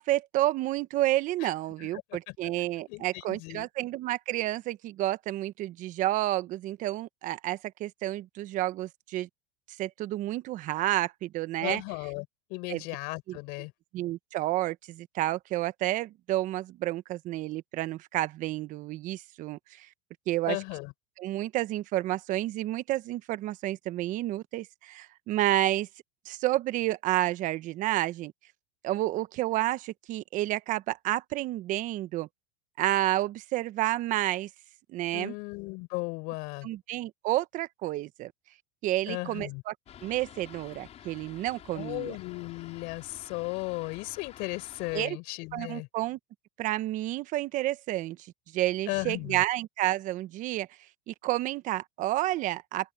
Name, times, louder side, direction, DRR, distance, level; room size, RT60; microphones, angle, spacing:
voice 1, 0.0-9.3 9.8-11.8 12.7-12.8 13.3-13.4 13.9-19.9 20.3-20.6 21.2-25.9 26.2-28.3 28.8-32.3 32.8-34.5 34.9-35.3 36.6-38.3 38.8-39.7 40.0-42.1 44.9-45.2 45.5-46.2 46.6-48.2 48.5-50.7 51.1-52.9, right 15 dB, 45° right, 1.2 m, -30 dB
voice 2, 1.8-2.4 2.9-3.7 11.6-13.7 20.5-20.9 35.1-36.7 39.1-39.6 41.7-45.9 48.9-49.4, left 27 dB, 60° left, 5.7 m, -36 dB
Fixed-wing aircraft airplane, 39.9-45.0, left 11 dB, 35° left, 5.7 m, -50 dB
open air
supercardioid pair, 125°, 19 cm